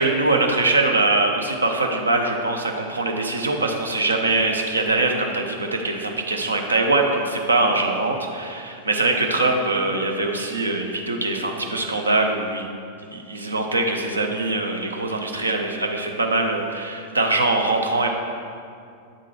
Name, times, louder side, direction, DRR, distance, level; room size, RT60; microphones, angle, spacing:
voice 1, 0.0-12.7 13.1-18.1, right 2 dB, 80° right, 3 dB, 0.6 m, -22 dB
8.1 x 3.8 x 4.2 m, 2.3 s
figure-of-eight pair, 90°, 0 cm